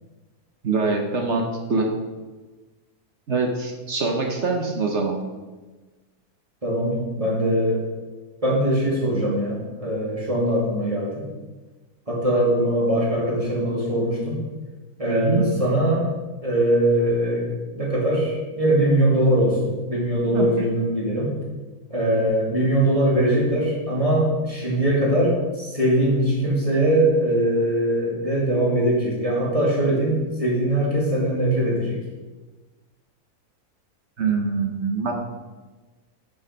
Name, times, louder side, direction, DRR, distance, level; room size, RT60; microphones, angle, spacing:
voice 1, 0.6-1.9 3.3-5.2 15.1-15.5 20.3-20.5 34.2-35.1, right 4 dB, 50° right, 2 dB, 1.3 m, -24 dB
voice 2, 6.6-7.8 8.4-11.2 12.1-14.4 15.0-16.1 16.4-17.5 17.7-21.3 21.9-32.0, right 1 dB, 20° right, -6 dB, 2.7 m, -21 dB
9.9 x 5.5 x 5.3 m, 1.2 s
omnidirectional pair, 1.6 m